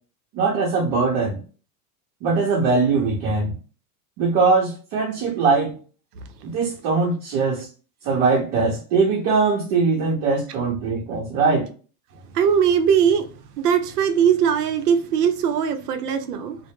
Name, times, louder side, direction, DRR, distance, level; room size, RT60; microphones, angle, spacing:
voice 1, 0.3-1.4 2.2-3.5 4.2-5.8 6.4-7.7 8.0-11.7, right 4 dB, 50° right, 0.7 m, -21 dB
voice 2, 12.3-13.3 13.6-16.6, right 8 dB, 85° right, 0.6 m, -20 dB
2.1 x 2.1 x 3.0 m
supercardioid pair, 120°, 45 cm